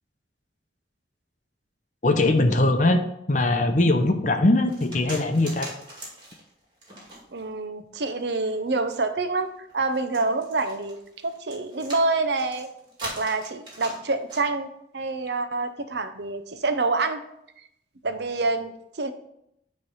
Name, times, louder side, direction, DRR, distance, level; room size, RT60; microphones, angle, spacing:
voice 1, 2.0-3.0 3.3-5.7, left 2 dB, 45° left, 6 dB, 0.7 m, -21 dB
sound 1, 4.7-7.5 8.1-14.4, right 1 dB, 25° right, 2.3 m, -41 dB
voice 2, 7.3-9.5 9.7-12.7 13.0-14.7 14.9-17.2 18.0-18.7 19.0-19.1, right 3 dB, 70° right, 10 dB, 0.7 m, -27 dB
9.5 x 3.3 x 5.6 m, 0.78 s
head